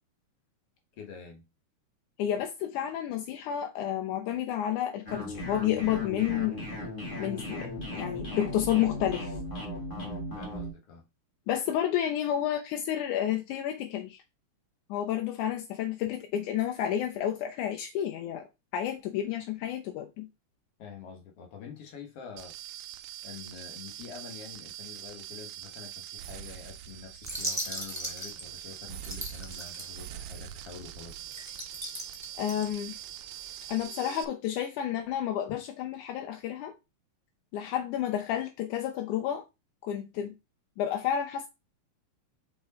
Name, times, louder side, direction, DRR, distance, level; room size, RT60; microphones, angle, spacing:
voice 1, 1.0-1.4 9.9-11.1 20.8-22.6 23.2-31.3, left 6 dB, 55° left, 2.1 m, -46 dB
voice 2, 2.2-6.6 7.2-9.4 11.5-14.2 14.9-18.5 18.7-20.3 32.4-33.0 33.7-36.7 37.5-39.4 39.8-40.3 40.8-41.5, left 10 dB, 85° left, 2.2 m, -30 dB
sound 1, 5.0-10.7, left 1 dB, 20° left, 2.0 m, -37 dB
sound 2, 22.4-34.2, right 12 dB, 85° right, 2.1 m, -43 dB
sound 3, 27.2-30.2 30.6-30.7 31.0-33.7, right 1 dB, 5° right, 1.7 m, -38 dB
5.2 x 4.7 x 4.1 m
omnidirectional pair, 3.5 m